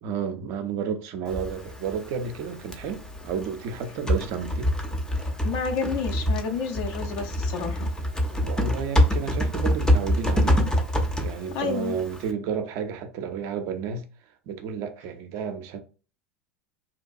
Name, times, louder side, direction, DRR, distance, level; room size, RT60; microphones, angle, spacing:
voice 1, 0.0-4.7 8.3-10.7 11.2-14.0 14.5-15.8, right 6 dB, 50° right, 0.5 m, -31 dB
Typing, 1.3-12.3, equal, 10° left, 0.6 m, -26 dB
voice 2, 5.4-7.9 11.5-11.9, left 5 dB, 55° left, 0.6 m, -30 dB
2.7 x 2.2 x 2.5 m
figure-of-eight pair, 80°, 7 cm